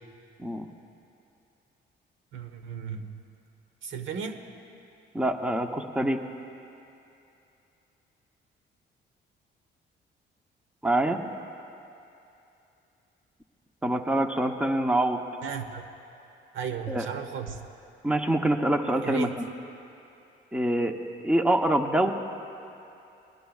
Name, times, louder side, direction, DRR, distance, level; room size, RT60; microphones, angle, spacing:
voice 1, 2.3-3.1 3.8-4.4 15.4-15.8 16.5-17.6 19.0-19.3, right 7 dB, 80° right, 7 dB, 1.0 m, -34 dB
voice 2, 5.1-6.2 10.8-11.2 13.8-15.2 16.9-17.1 18.0-19.3 20.5-21.0 21.2-22.1, right 1 dB, 5° right, 5 dB, 0.9 m, -25 dB
26.0 x 19.5 x 2.4 m, 2.8 s
cardioid pair, 90°, 20 cm